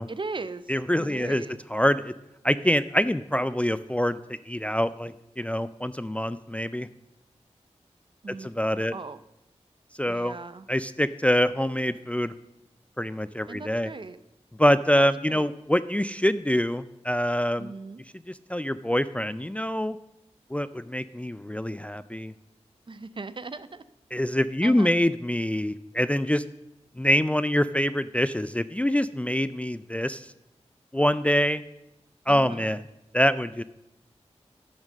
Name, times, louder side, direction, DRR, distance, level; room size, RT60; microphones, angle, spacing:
voice 1, 0.1-1.6 8.2-9.2 10.1-10.7 13.5-14.2 14.9-15.5 17.6-18.0 22.9-23.8 24.6-24.9 32.3-32.8, right 3 dB, 45° right, 14 dB, 0.5 m, -39 dB
voice 2, 0.7-1.4 1.7-2.1 2.4-4.2 4.5-6.9 8.3-8.9 10.0-10.4 10.7-12.3 13.0-13.9 14.6-17.7 18.3-20.0 20.5-22.3 24.1-26.4 27.0-30.3 30.9-31.6 32.3-32.8 33.1-33.6, equal, 10° left, 14 dB, 0.3 m, -25 dB
10.5 x 6.3 x 6.3 m, 0.89 s
wide cardioid pair, 70°, 12 cm